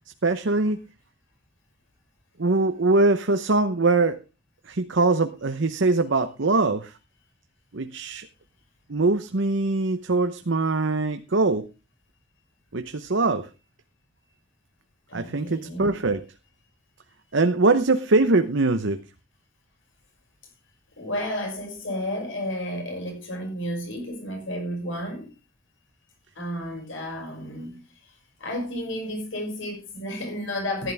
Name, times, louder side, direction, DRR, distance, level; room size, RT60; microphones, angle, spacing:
voice 1, 0.2-0.8 2.4-4.2 4.7-6.9 7.7-8.3 8.9-11.7 12.7-13.5 15.1-16.2 17.3-19.0, right 3 dB, 65° right, 0.9 m, -22 dB
voice 2, 15.1-16.0 21.0-25.3 26.4-27.8 28.4-30.9, left 1 dB, 70° left, 6.2 m, -32 dB
14.5 x 11.5 x 3.5 m
head